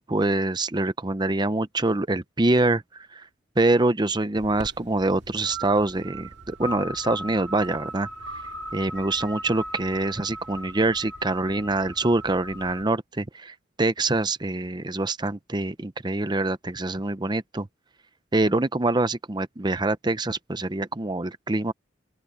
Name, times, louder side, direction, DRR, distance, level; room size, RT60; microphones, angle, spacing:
voice 1, 0.0-2.8 3.1-3.2 3.6-8.1 8.7-17.7 18.3-21.7, right 2 dB, 20° right, 0.8 m, -25 dB
sound 1, 4.4-12.8, right 1 dB, 65° right, 2.4 m, -38 dB
open air
head